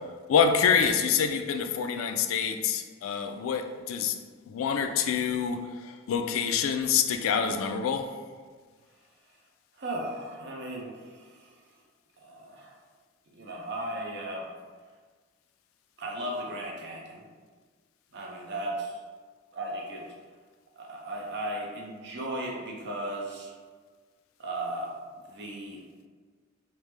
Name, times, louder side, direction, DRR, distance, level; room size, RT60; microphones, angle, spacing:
voice 1, 0.3-4.1 4.5-5.7 6.1-8.1, left 7 dB, 90° left, 0.3 m, -26 dB
voice 2, 9.8-11.5 12.2-12.7 13.3-14.5 16.0-17.2 18.1-19.0 19.5-20.0 20.8-23.5 24.4-25.8, right 1 dB, 55° right, 0.6 m, -36 dB
3.2 x 2.1 x 3.2 m
head